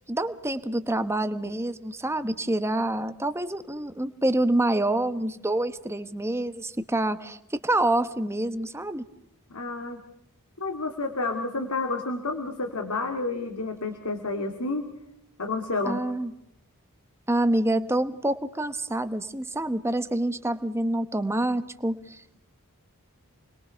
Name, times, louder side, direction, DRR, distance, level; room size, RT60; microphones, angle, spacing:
voice 1, 0.0-9.0 15.8-16.3 17.3-22.4, right 1 dB, 10° right, 11 dB, 1.1 m, -27 dB
voice 2, 9.5-10.0 10.6-14.9 15.4-16.0, left 3 dB, 85° left, 4 dB, 2.5 m, -30 dB
29.0 x 21.5 x 5.7 m, 0.79 s
head